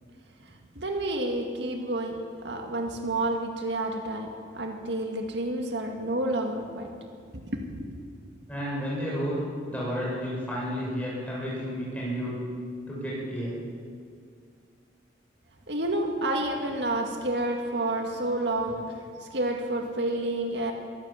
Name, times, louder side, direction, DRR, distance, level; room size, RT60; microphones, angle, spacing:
voice 1, 0.8-6.9 7.3-8.0 15.7-20.7, right 1 dB, 65° right, 2 dB, 2.1 m, -30 dB
voice 2, 8.5-12.4 12.9-13.6, equal, 10° left, -6 dB, 7.3 m, -31 dB
22.5 x 16.0 x 7.5 m, 2.2 s
head